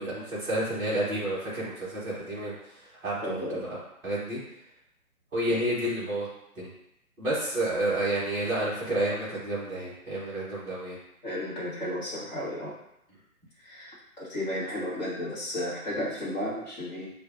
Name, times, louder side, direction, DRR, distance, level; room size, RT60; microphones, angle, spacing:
voice 1, 0.0-2.5 3.0-3.7 4.0-4.4 5.3-6.3 6.6-6.7 7.2-11.0, right 1 dB, 5° right, -12 dB, 0.9 m, -30 dB
voice 2, 3.2-3.6 5.5-5.6 11.2-12.7 13.6-17.1, left 1 dB, 30° left, -7 dB, 1.2 m, -33 dB
6.5 x 2.4 x 2.4 m, 0.80 s
figure-of-eight pair, 140°, 44 cm